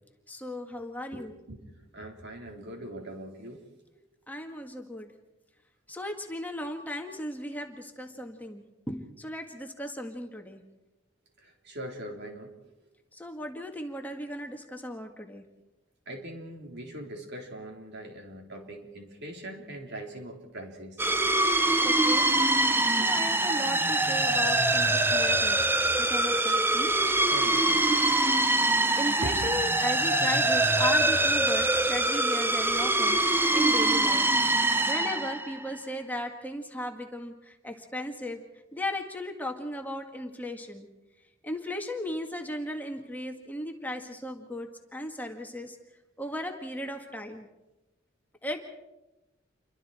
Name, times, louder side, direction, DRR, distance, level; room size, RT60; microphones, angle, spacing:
voice 1, 0.3-1.4 4.3-5.1 5.9-10.6 13.1-15.4 21.8-22.3 22.9-25.6 25.9-27.0 29.0-34.3 34.9-38.4 38.7-40.9 41.4-45.8 46.2-47.5 48.4-48.6, left 1 dB, 10° left, 3 dB, 1.8 m, -36 dB
voice 2, 1.5-3.6 11.4-12.6 16.1-21.1 27.1-27.9 28.5-28.8 29.2-29.4, right 1 dB, 60° right, 1 dB, 4.0 m, -41 dB
sound 1, 21.0-35.8, right 2 dB, 10° right, 0.8 m, -24 dB
28.5 x 23.5 x 4.4 m, 0.97 s
head